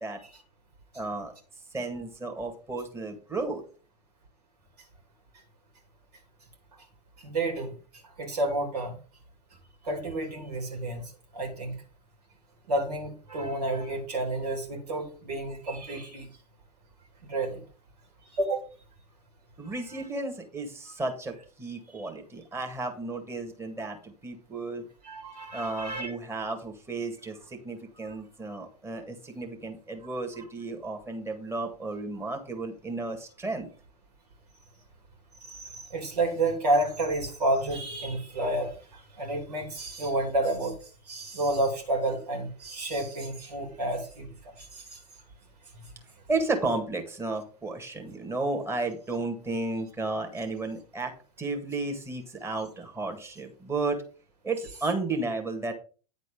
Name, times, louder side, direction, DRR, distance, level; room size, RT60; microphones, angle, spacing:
voice 1, 0.9-1.3 1.7-3.6 19.6-24.9 25.5-33.7 46.3-54.0 54.4-55.7, right 3 dB, 10° right, 3 dB, 1.9 m, -33 dB
voice 2, 7.2-7.7 8.2-9.0 9.8-11.7 12.7-16.3 17.3-17.6 18.3-18.6 21.9-22.1 25.0-26.1 28.0-28.1 35.4-40.7 41.1-44.3 44.6-45.0, right 2 dB, 70° right, 2 dB, 3.2 m, -30 dB
9.7 x 4.1 x 5.4 m, 0.37 s
figure-of-eight pair, 95°, 21 cm